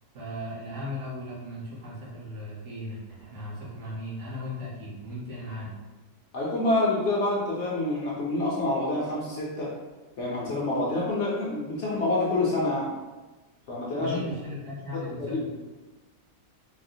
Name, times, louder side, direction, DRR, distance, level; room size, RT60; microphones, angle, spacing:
voice 1, 0.1-5.7 14.0-15.5, left 1 dB, 60° right, -6 dB, 1.2 m, -37 dB
voice 2, 6.3-9.7 10.2-12.9 13.7-14.1 15.2-15.5, left 2 dB, 60° left, -5 dB, 0.8 m, -27 dB
4.0 x 2.0 x 2.6 m, 1.2 s
omnidirectional pair, 1.6 m